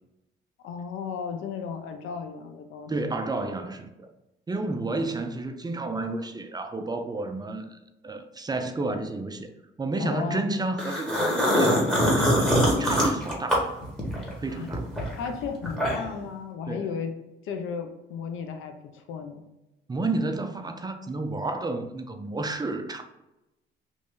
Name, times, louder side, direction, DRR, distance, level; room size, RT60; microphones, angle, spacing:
voice 1, 0.6-3.2 10.0-10.5 14.5-14.7 15.1-17.1 17.4-19.5, left 6 dB, 80° left, 0.6 m, -34 dB
voice 2, 2.9-4.1 4.5-7.8 8.0-9.5 9.8-12.5 12.8-13.8 14.4-14.9 16.7-16.9 19.9-23.0, right 2 dB, 20° right, 0.4 m, -31 dB
sound 1, 10.8-14.3 14.7-16.2, equal, 5° left, 1.2 m, -23 dB
3.2 x 2.6 x 3.6 m
cardioid pair, 90°, 20 cm